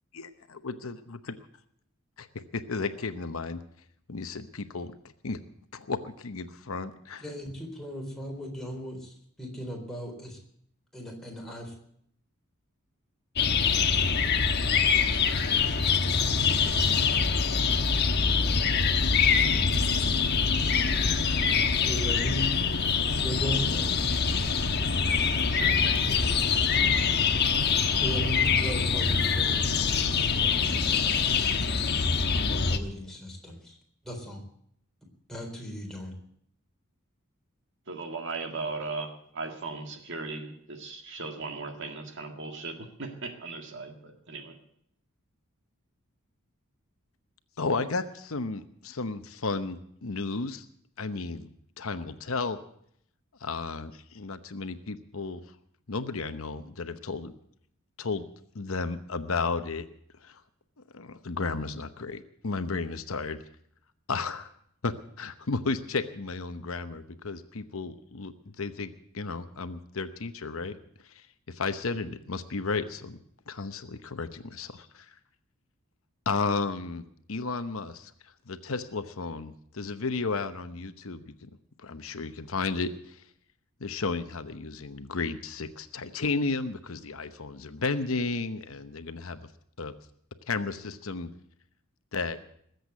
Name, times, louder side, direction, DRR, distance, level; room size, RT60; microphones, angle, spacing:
voice 1, 0.1-1.2 2.2-2.3 2.5-3.6 4.1-4.9 5.2-5.4 5.7-7.2 47.6-50.6 51.0-51.5 51.8-52.6 53.4-55.4 55.9-57.3 58.0-58.2 58.5-59.9 60.2-60.4 60.9-63.4 64.1-64.5 64.8-70.8 71.1-73.2 73.5-75.1 76.3-78.1 78.5-81.5 81.8-83.2 83.8-89.4 89.8-90.0 90.5-91.3 92.1-92.5, left 4 dB, 65° left, 10 dB, 0.9 m, -33 dB
voice 2, 7.2-10.4 10.9-11.7 21.8-22.5 23.2-24.0 28.0-31.7 32.3-33.8 34.0-34.4 35.3-36.1, equal, ahead, -1 dB, 3.8 m, -37 dB
sound 1, 13.4-32.8, left 5 dB, 50° left, 1.2 m, -24 dB
voice 3, 25.1-27.0 37.9-44.6, right 3 dB, 55° right, 5 dB, 1.9 m, -38 dB
20.0 x 8.1 x 8.2 m, 0.68 s
head